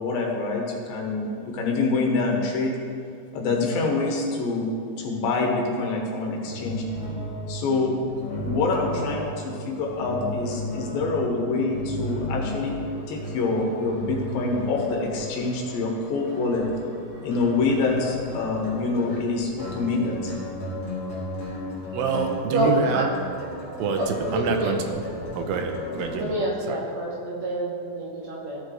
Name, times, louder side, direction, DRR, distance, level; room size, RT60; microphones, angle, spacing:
voice 1, 0.0-2.8 3.3-6.8 7.5-8.0 8.4-12.8 13.1-16.6 17.2-20.3, left 3 dB, 85° left, 0 dB, 2.9 m, -26 dB
sound 1, 6.4-26.2, left 1 dB, 20° left, 2.2 m, -35 dB
sound 2, 12.5-17.8, equal, 50° left, 1.0 m, -46 dB
voice 2, 21.9-23.1 23.8-24.8 25.4-26.8, right 5 dB, 85° right, 4 dB, 2.5 m, -27 dB
voice 3, 22.5-23.0 24.0-24.7 26.1-28.6, right 1 dB, 60° right, -4 dB, 2.0 m, -27 dB
14.0 x 6.4 x 3.2 m, 2.4 s
omnidirectional pair, 4.1 m